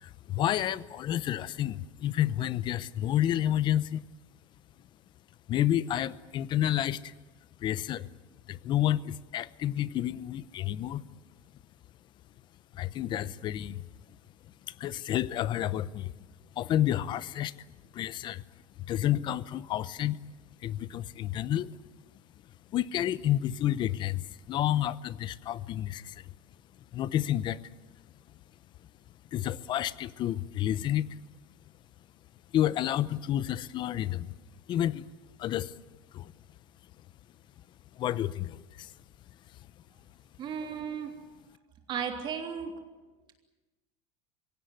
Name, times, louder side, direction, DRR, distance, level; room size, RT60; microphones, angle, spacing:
voice 1, 0.0-4.0 5.5-7.1 7.6-8.1 8.5-11.0 12.7-13.8 14.8-16.1 16.6-17.5 17.9-18.4 18.8-20.2 20.6-21.7 22.7-26.2 26.9-27.6 29.3-31.2 32.5-34.3 34.7-35.0 35.4-35.7 36.1-36.3 38.0-38.9, left 12 dB, 35° left, 18 dB, 0.7 m, -30 dB
voice 2, 40.4-41.1 41.9-42.7, right 7 dB, 35° right, 4 dB, 3.4 m, -34 dB
24.0 x 17.0 x 9.7 m, 1.2 s
cardioid pair, 155°, 14 cm